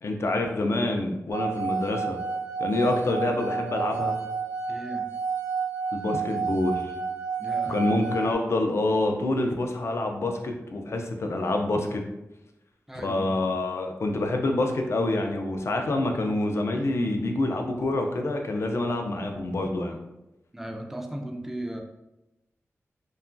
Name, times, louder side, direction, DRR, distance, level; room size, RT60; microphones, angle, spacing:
voice 1, 0.0-2.2 2.6-4.2 5.9-6.9 7.7-12.0 13.0-20.0, left 2 dB, 60° left, 3 dB, 0.4 m, -27 dB
sound 1, 1.3-8.3, right 5 dB, 85° right, 0.7 m, -30 dB
voice 2, 4.7-5.1 7.4-7.8 12.9-13.4 20.5-21.8, right 1 dB, 5° right, 1 dB, 0.4 m, -36 dB
2.8 x 2.3 x 2.5 m, 0.94 s
wide cardioid pair, 85°, 5 cm